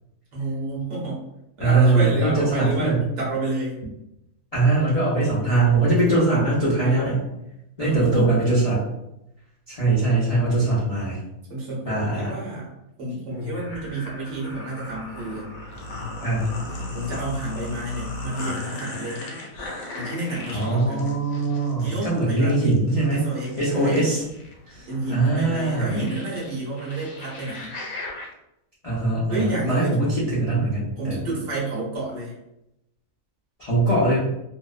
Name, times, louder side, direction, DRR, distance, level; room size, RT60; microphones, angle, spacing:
voice 1, 0.3-1.2 1.6-3.8 7.8-8.4 11.5-12.7 13.0-15.5 16.9-19.2 19.9-21.1 21.8-22.6 23.1-24.0 24.9-27.7 29.3-30.0 31.0-32.3, right 2 dB, 60° right, -5 dB, 1.0 m, -29 dB
voice 2, 1.6-3.1 4.5-7.2 7.8-8.8 9.7-11.2 11.9-12.3 16.2-16.5 20.5-23.2 23.6-24.2 24.7-25.9 28.8-31.3 33.6-34.2, right 2 dB, 65° left, -8 dB, 0.3 m, -21 dB
sound 1, 13.3-28.3, left 2 dB, 90° left, 1.1 m, -37 dB
2.7 x 2.0 x 2.3 m, 0.86 s
omnidirectional pair, 1.6 m